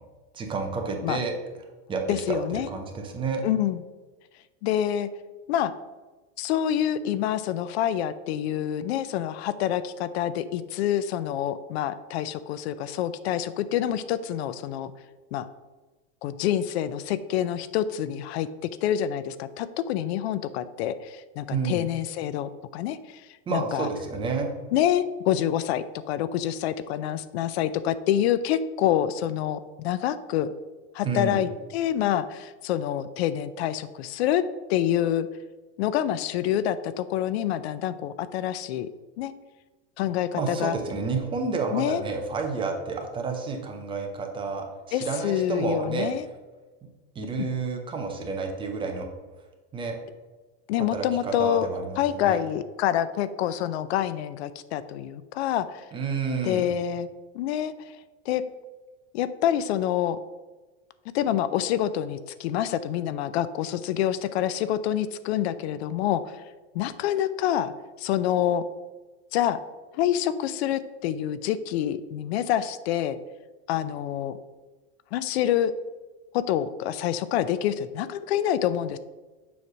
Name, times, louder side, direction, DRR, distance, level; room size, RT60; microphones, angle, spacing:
voice 1, 0.3-1.3 1.9-2.0 2.3-3.4 21.5-21.9 23.5-24.5 31.0-31.4 40.4-46.1 46.8-46.9 47.2-49.1 49.7-50.0 50.9-52.4 55.9-56.7, right 4 dB, 15° right, 3 dB, 0.6 m, -30 dB
voice 2, 2.1-2.7 3.4-3.8 4.6-5.1 5.5-5.7 6.4-14.9 15.3-15.5 16.2-18.5 18.8-23.2 23.5-23.9 24.7-30.5 30.9-34.4 34.7-35.3 35.8-38.9 39.2-39.3 40.0-40.8 41.7-42.0 44.9-46.3 47.2-47.5 50.7-51.7 52.0-55.8 56.4-57.1 57.3-58.0 58.3-58.4 59.1-60.2 61.1-66.4 66.7-67.7 68.0-68.6 69.3-69.6 69.9-73.2 73.7-74.4 75.1-75.7 76.3-79.0, left 11 dB, 70° left, 14 dB, 0.5 m, -27 dB
7.0 x 3.2 x 6.0 m, 1.2 s
supercardioid pair, 160°, 33 cm